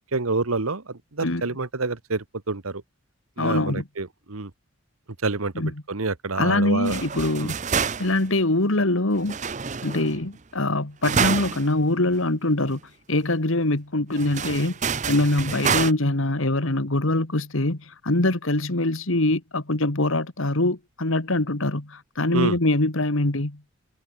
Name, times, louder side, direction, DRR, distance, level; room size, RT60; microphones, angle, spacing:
voice 1, 0.1-2.8 3.4-4.5 5.2-7.0 7.4-7.5 11.0-11.1 22.3-22.6, right 3 dB, 80° right, 1.4 m, -28 dB
voice 2, 3.4-3.9 5.6-5.7 6.4-7.6 8.0-9.4 9.8-12.8 13.1-14.7 15.1-23.6, left 2 dB, 70° left, 2.0 m, -23 dB
sound 1, 6.9-8.3 9.2-10.3 11.0-11.7 12.1-12.2 12.7-12.8 14.1-15.9, right 6 dB, 35° right, 0.7 m, -27 dB
head